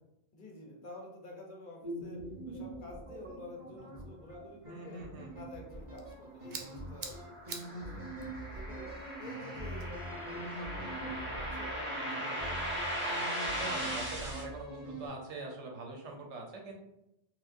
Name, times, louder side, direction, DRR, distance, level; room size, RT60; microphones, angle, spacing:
voice 1, 0.3-2.2 2.4-5.0 5.3-8.1 8.4-12.7, left 2 dB, 50° left, 0 dB, 0.8 m, -50 dB
sound 1, 1.8-15.1, right 1 dB, 30° right, 0.8 m, -44 dB
voice 2, 4.7-5.3 13.5-16.7, right 2 dB, 85° right, 1 dB, 1.1 m, -43 dB
sound 2, 5.7-10.7, right 5 dB, 60° right, 0.4 m, -49 dB
sound 3, 6.6-14.4, equal, 10° right, 1.1 m, -38 dB
4.4 x 2.2 x 2.5 m, 0.87 s
omnidirectional pair, 1.2 m